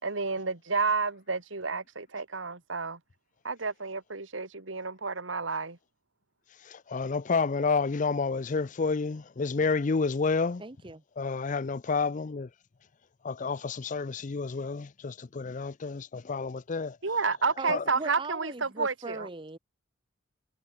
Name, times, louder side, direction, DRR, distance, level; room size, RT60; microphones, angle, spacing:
voice 1, 0.0-3.0 3.4-5.8 17.0-19.3, right 4 dB, 80° right, 2.4 m, -30 dB
voice 2, 6.7-10.6 11.2-12.5 13.2-17.0 17.7-17.8, left 4 dB, 40° left, 0.5 m, -29 dB
voice 3, 10.6-11.0 17.6-19.6, right 3 dB, 25° right, 1.2 m, -39 dB
head